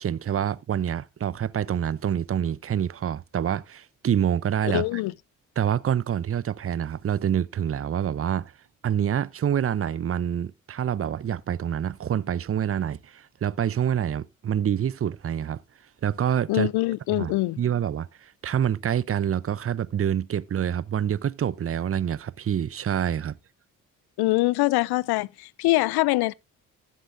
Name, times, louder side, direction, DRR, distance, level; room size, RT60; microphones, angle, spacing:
voice 1, 0.0-5.0 5.6-8.5 8.8-15.6 16.0-16.7 17.1-23.4, right 9 dB, 35° right, 0.7 m, -27 dB
voice 2, 4.7-5.1 16.5-17.6 24.2-26.3, left 20 dB, 75° left, 0.6 m, -23 dB
15.0 x 7.5 x 2.6 m
hypercardioid pair, 45°, 39 cm